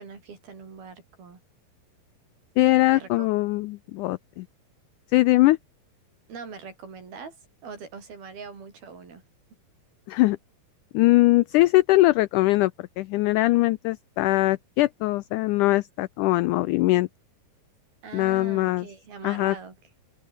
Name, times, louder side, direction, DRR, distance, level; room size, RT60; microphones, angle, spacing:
voice 1, 0.0-1.4 2.9-3.3 6.3-7.4 7.6-9.2 18.0-19.8, right 5 dB, 85° right, 7.6 m, -42 dB
voice 2, 2.6-4.5 5.1-5.6 10.1-10.4 10.9-17.1 18.1-18.9 19.2-19.6, left 19 dB, 85° left, 1.8 m, -21 dB
open air
omnidirectional pair, 4.2 m